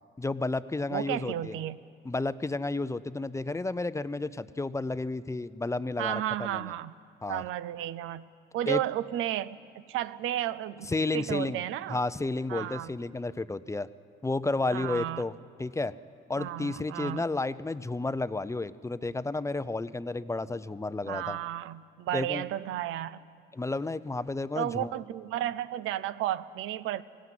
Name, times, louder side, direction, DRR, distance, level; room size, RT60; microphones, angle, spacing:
voice 1, 0.2-1.6 2.0-6.7 7.2-7.4 8.7-8.8 10.9-11.6 11.9-13.9 14.2-15.3 15.6-15.9 16.3-21.4 22.1-22.4 23.5-24.9, left 2 dB, 15° left, 14 dB, 0.5 m, -31 dB
voice 2, 0.9-1.8 6.0-6.9 7.3-8.3 8.5-9.6 9.9-12.0 12.5-12.9 14.7-15.2 16.4-17.2 21.1-23.2 24.6-27.0, right 13 dB, 90° right, 16 dB, 0.6 m, -33 dB
18.5 x 16.5 x 9.3 m, 2.3 s
cardioid pair, 90°, 20 cm